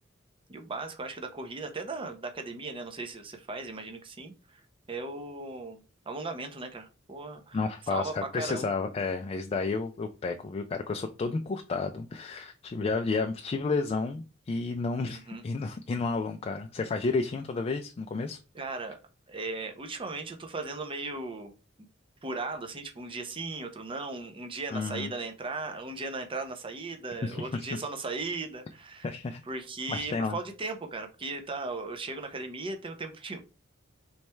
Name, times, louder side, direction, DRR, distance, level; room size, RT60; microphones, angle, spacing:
voice 1, 0.5-4.6 4.9-8.7 15.1-15.4 18.5-19.0 19.3-21.5 21.8-21.9 22.2-29.1 29.4-33.4, right 3 dB, 25° right, 6 dB, 0.6 m, -37 dB
voice 2, 7.5-18.4 24.7-25.1 27.2-27.7 29.0-29.4 29.9-30.4, left 4 dB, 30° left, 5 dB, 0.3 m, -31 dB
3.3 x 3.1 x 4.4 m, 0.33 s
head